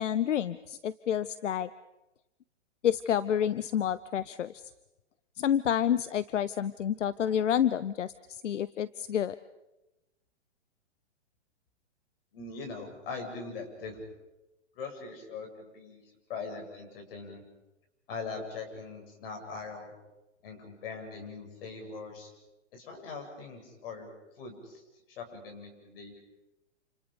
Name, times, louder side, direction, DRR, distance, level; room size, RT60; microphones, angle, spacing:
voice 1, 0.0-1.7 2.8-4.6 5.4-9.4, left 9 dB, 85° left, 16 dB, 0.8 m, -29 dB
voice 2, 12.3-14.0 14.7-17.4 18.1-19.9 20.4-22.3 22.7-24.8 25.1-26.2, left 4 dB, 50° left, 3 dB, 7.8 m, -41 dB
29.0 x 27.5 x 5.2 m, 1.0 s
hypercardioid pair, 135°, 36 cm